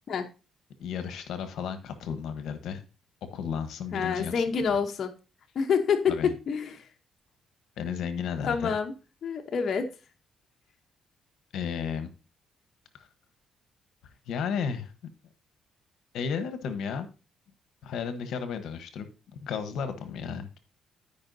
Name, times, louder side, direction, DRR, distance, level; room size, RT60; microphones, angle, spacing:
voice 1, 0.8-2.8 3.2-4.4 6.1-6.3 7.8-8.8 11.5-12.1 12.9-13.1 14.3-14.9 16.1-17.1 17.8-19.1 19.4-20.6, left 7 dB, 80° left, 9 dB, 1.0 m, -33 dB
voice 2, 3.9-5.1 5.5-6.8 8.4-8.9 9.2-9.9, left 6 dB, 55° left, 4 dB, 0.9 m, -27 dB
13.0 x 5.4 x 2.7 m, 0.31 s
cardioid pair, 90°, 0 cm